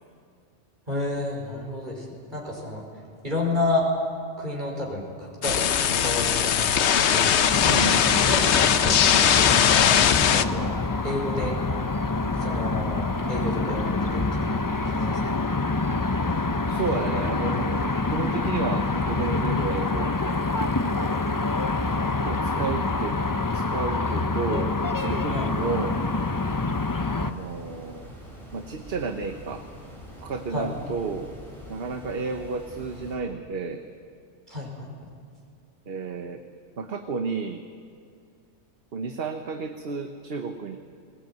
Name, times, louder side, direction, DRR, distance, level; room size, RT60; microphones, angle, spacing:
voice 1, 0.9-2.8 3.2-3.9 4.4-7.9 8.2-9.9 10.3-10.8 11.0-11.5 12.4-15.4 25.3-25.5 30.5-30.7 34.5-35.1, left 2 dB, 40° right, -2 dB, 5.4 m, -31 dB
sound 1, 5.4-10.5, left 8 dB, 70° left, 1.0 m, -20 dB
sound 2, 7.5-27.3, left 3 dB, 20° left, 0.6 m, -26 dB
voice 2, 7.7-8.2 16.7-20.1 22.3-23.2 23.5-26.0 27.1-28.1 28.5-29.7 30.2-31.3 31.7-33.8 35.9-36.4 36.8-37.6 38.9-40.8, right 4 dB, 55° right, 6 dB, 1.2 m, -32 dB
sound 3, 25.0-33.2, equal, ahead, 7.4 m, -44 dB
20.5 x 19.0 x 9.3 m, 2.3 s
omnidirectional pair, 1.2 m